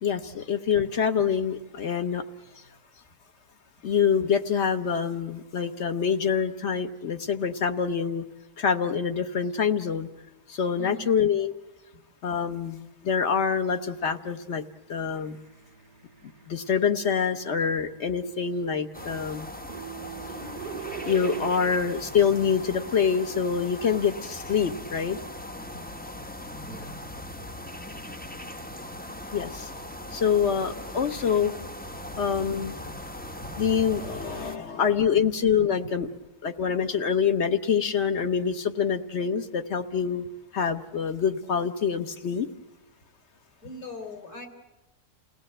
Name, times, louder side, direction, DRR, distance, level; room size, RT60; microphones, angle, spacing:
voice 1, 0.0-2.2 3.8-8.2 8.6-10.1 10.5-11.5 12.2-14.6 14.9-15.4 16.5-19.5 21.0-25.2 29.3-29.7 30.1-31.5 32.2-32.8 33.6-36.1 36.4-40.2 40.5-42.5, left 7 dB, 50° left, 9 dB, 1.2 m, -26 dB
voice 2, 10.8-11.1 24.8-24.9 25.7-25.8 26.6-27.1 43.6-44.5, left 1 dB, 65° left, 3 dB, 4.2 m, -41 dB
sound 1, 15.2-22.0, right 7 dB, 45° right, 1.0 m, -43 dB
sound 2, 18.9-34.6, left 1 dB, 10° left, 0.5 m, -39 dB
29.0 x 18.0 x 7.8 m, 1.0 s
omnidirectional pair, 1.7 m